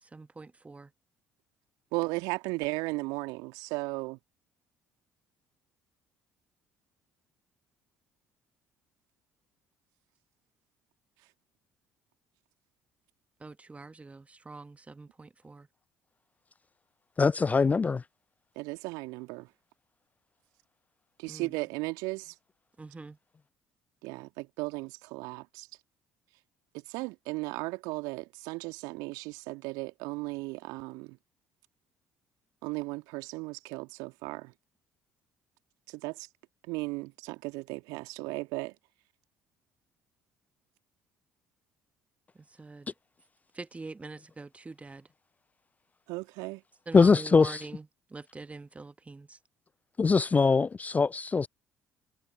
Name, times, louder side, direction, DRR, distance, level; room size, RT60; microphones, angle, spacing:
voice 1, 0.0-0.9 13.4-15.7 21.3-21.5 22.8-23.2 42.3-42.9 43.5-45.1 46.9-49.4, right 3 dB, 20° right, 1.4 m, -44 dB
voice 2, 1.9-4.2 18.6-19.5 21.2-22.3 24.0-25.7 26.9-31.2 32.6-34.5 35.9-36.3 36.7-38.7 46.1-46.6, right 25 dB, 65° right, 1.9 m, -36 dB
voice 3, 17.2-18.0 46.9-47.6 50.0-51.5, left 4 dB, 20° left, 0.3 m, -22 dB
figure-of-eight pair, 50°, 7 cm